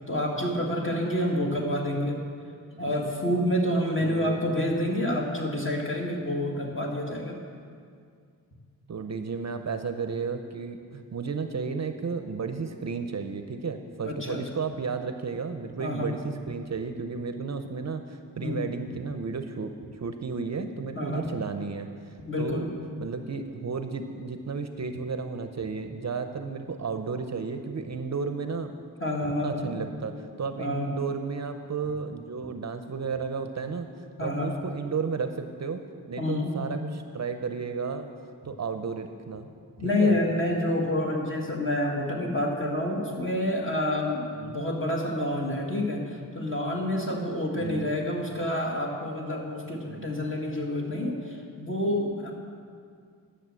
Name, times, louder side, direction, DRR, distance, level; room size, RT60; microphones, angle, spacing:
voice 1, 0.1-2.2 2.8-7.4 14.0-14.4 15.8-16.1 18.4-18.6 21.0-21.3 22.3-22.7 29.0-29.7 30.6-30.9 34.2-34.5 36.2-36.6 39.8-52.3, left 1 dB, 35° left, -1 dB, 2.0 m, -28 dB
voice 2, 4.0-4.4 8.9-21.9 22.4-22.7 23.0-28.7 29.2-33.9 34.2-35.8 36.1-38.1 38.4-39.5 39.8-40.2 44.3-44.6 47.6-47.9 49.9-50.1, right 5 dB, 45° right, 7 dB, 0.7 m, -33 dB
11.0 x 6.5 x 7.6 m, 2.2 s
wide cardioid pair, 85°, 37 cm